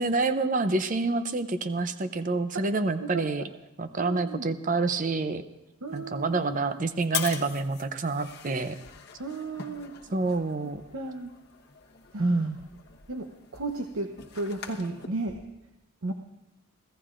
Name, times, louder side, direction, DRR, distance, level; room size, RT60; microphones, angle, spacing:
voice 1, 0.0-3.4 3.8-5.4 5.9-8.8 10.1-10.8 12.2-12.6, right 3 dB, 40° right, 10 dB, 0.6 m, -27 dB
voice 2, 3.0-3.5 4.0-4.5 5.8-6.7 9.2-9.9 10.9-11.3 12.1-12.5 13.1-13.3 13.5-14.1 14.3-15.4 16.0-16.1, right 3 dB, 85° right, 3 dB, 0.9 m, -34 dB
sound 1, 5.9-15.1, left 8 dB, 50° left, 1.2 m, -42 dB
25.5 x 16.0 x 2.5 m, 0.96 s
head